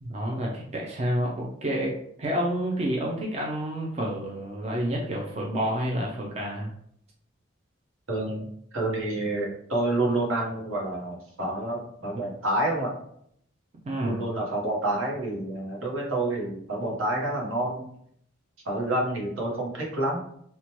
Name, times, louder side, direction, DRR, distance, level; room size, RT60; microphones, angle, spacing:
voice 1, 0.0-6.7 13.9-14.2, equal, 30° right, -2 dB, 0.4 m, -29 dB
voice 2, 8.1-8.5 8.7-12.9 14.0-17.9 18.6-20.2, right 1 dB, 80° right, -2 dB, 0.9 m, -28 dB
2.8 x 2.1 x 2.9 m, 0.68 s
head